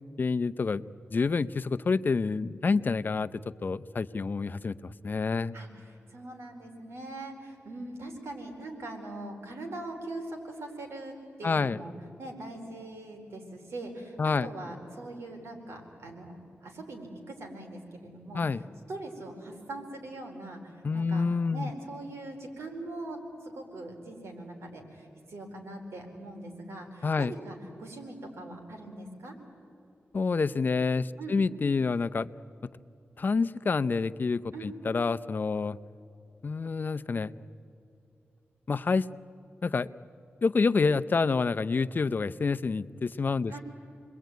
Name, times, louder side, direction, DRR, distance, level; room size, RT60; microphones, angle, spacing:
voice 1, 0.2-5.5 11.4-11.8 14.2-14.5 18.3-18.6 20.8-21.7 27.0-27.3 30.1-32.3 33.2-35.8 36.4-37.3 38.7-39.1 39.6-39.9 40.4-43.6, left 4 dB, 45° left, 13 dB, 0.6 m, -28 dB
voice 2, 5.5-11.9 12.2-18.6 18.9-29.3 31.2-31.4 34.5-34.8 43.5-43.6, right 2 dB, 85° right, 3 dB, 4.4 m, -42 dB
28.5 x 21.5 x 9.3 m, 2.7 s
wide cardioid pair, 100°, 4 cm